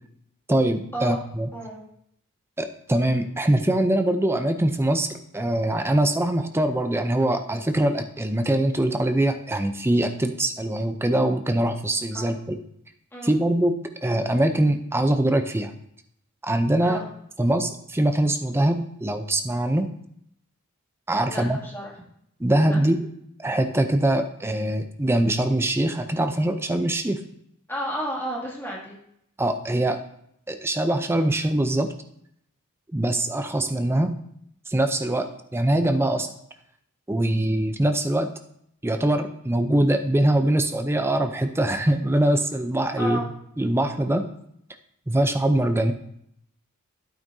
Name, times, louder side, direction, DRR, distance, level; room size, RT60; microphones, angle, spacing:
voice 1, 0.5-1.5 2.6-12.6 13.2-15.7 16.4-17.0 17.4-19.9 21.1-21.6 22.4-23.1 23.4-27.2 29.4-30.0 30.5-31.9 32.9-34.2 34.7-35.3 35.5-36.3 37.1-38.3 38.8-43.2 43.6-44.3 45.1-45.9, right 1 dB, 10° right, 7 dB, 0.5 m, -23 dB
voice 2, 21.2-21.9 22.7-22.8 27.7-29.0 35.0-35.2 43.0-43.3, right 1 dB, 10° left, -5 dB, 2.3 m, -32 dB
11.0 x 8.9 x 2.7 m, 0.73 s
head